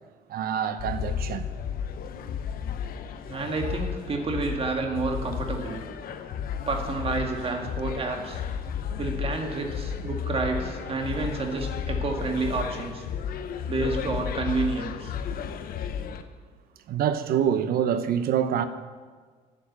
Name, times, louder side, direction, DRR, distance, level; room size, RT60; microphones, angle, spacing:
voice 1, 0.3-1.5 16.9-18.6, right 9 dB, 65° right, 11 dB, 0.9 m, -26 dB
sound 1, 0.8-16.2, left 7 dB, 60° left, 0.9 m, -33 dB
voice 2, 3.3-5.8 6.7-8.4 9.0-13.0 13.7-15.1, right 3 dB, 35° right, 3 dB, 1.9 m, -29 dB
11.5 x 7.2 x 7.3 m, 1.5 s
cardioid pair, 110°, 17 cm